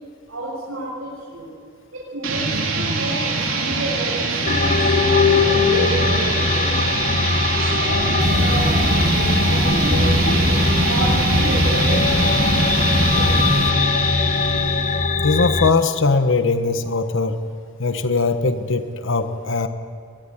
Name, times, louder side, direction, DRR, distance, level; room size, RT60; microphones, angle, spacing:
voice 1, 0.3-1.5 1.9-2.5 2.7-6.9 7.6-10.4 10.8-12.0 12.9-13.3, right 1 dB, 90° right, -5 dB, 6.4 m, -30 dB
sound 1, 2.2-15.1, right 3 dB, 75° right, 4.4 m, -24 dB
sound 2, 4.4-15.7, left 4 dB, 40° left, 0.8 m, -21 dB
sound 3, 8.2-13.7, right 1 dB, 35° right, 2.0 m, -22 dB
voice 2, 15.2-17.4 17.8-19.7, left 3 dB, 65° left, 9 dB, 1.2 m, -20 dB
22.5 x 20.5 x 9.9 m, 2.2 s
head